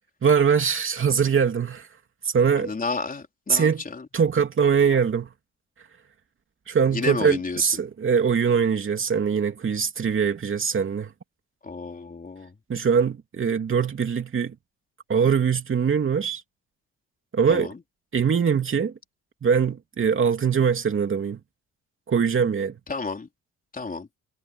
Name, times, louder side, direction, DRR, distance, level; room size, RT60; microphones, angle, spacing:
voice 1, 0.2-1.9 2.2-2.7 3.5-3.8 4.1-5.3 6.7-11.1 12.7-14.5 15.1-16.4 17.3-17.7 18.1-18.9 19.4-21.4 22.1-22.8, right 6 dB, 40° right, 2.9 m, -22 dB
voice 2, 2.6-4.1 6.9-7.7 11.6-12.5 17.5-17.8 22.9-23.3 23.7-24.1, left 4 dB, 30° left, 4.1 m, -31 dB
cardioid pair, 90°, 30 cm